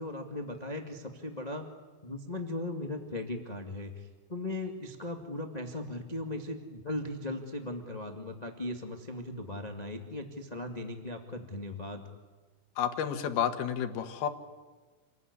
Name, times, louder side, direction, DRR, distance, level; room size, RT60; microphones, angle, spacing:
voice 1, 0.0-1.7 2.0-12.0, left 2 dB, 20° left, 3 dB, 1.3 m, -38 dB
voice 2, 12.8-14.3, left 8 dB, 85° left, 8 dB, 3.4 m, -30 dB
29.0 x 20.5 x 9.7 m, 1.4 s
omnidirectional pair, 4.3 m